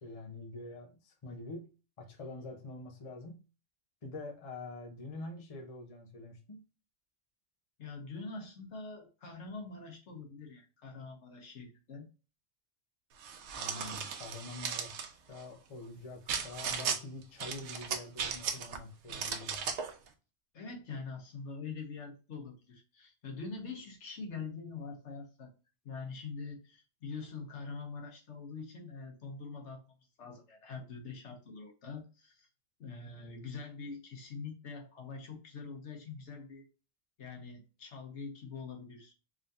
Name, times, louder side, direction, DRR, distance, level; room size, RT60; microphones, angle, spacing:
voice 1, 0.0-1.7 2.0-3.4 4.0-6.6 13.6-19.7, left 2 dB, 35° left, 0.8 m, -45 dB
voice 2, 7.8-12.1 20.5-25.5 25.8-29.8 30.2-32.5 32.8-36.7 37.2-39.1, left 4 dB, 70° left, 1.2 m, -44 dB
sound 1, 13.2-15.1 16.3-17.0 17.4-18.8 19.1-19.9, right 7 dB, 70° right, 0.9 m, -36 dB
3.7 x 3.4 x 2.6 m
omnidirectional pair, 1.2 m